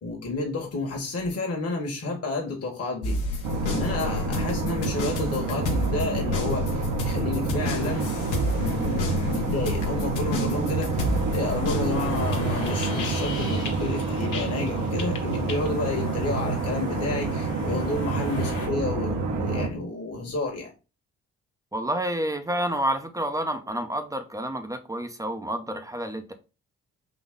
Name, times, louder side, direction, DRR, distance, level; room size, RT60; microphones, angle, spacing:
voice 1, 0.0-3.4 3.7-8.1 8.6-20.7, left 3 dB, 40° left, 1 dB, 1.5 m, -30 dB
sound 1, 3.0-14.7 15.0-15.7, left 3 dB, 60° left, 1.0 m, -31 dB
sound 2, 3.4-19.7, right 4 dB, 50° right, 1.0 m, -28 dB
sound 3, 7.6-18.7, left 3 dB, 90° left, 1.4 m, -41 dB
voice 2, 21.7-26.3, right 1 dB, 10° right, 8 dB, 0.7 m, -29 dB
4.0 x 2.9 x 3.6 m, 0.32 s
hypercardioid pair, 55°, 36 cm